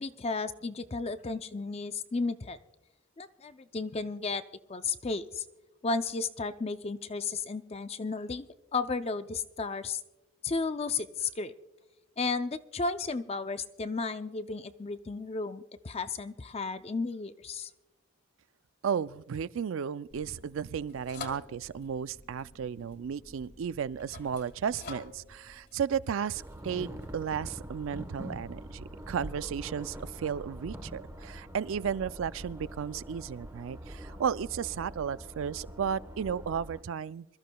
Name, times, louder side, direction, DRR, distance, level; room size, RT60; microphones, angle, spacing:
voice 1, 0.0-2.6 3.2-4.4 4.7-5.4 5.8-8.5 8.7-10.0 10.4-11.5 12.2-17.7, left 4 dB, 30° left, 0.4 m, -33 dB
voice 2, 18.8-37.3, right 7 dB, 70° right, 0.3 m, -34 dB
sound 1, 20.1-27.4, left 4 dB, 50° left, 2.0 m, -49 dB
sound 2, 26.3-36.8, equal, 15° right, 1.0 m, -44 dB
25.5 x 13.5 x 2.3 m
head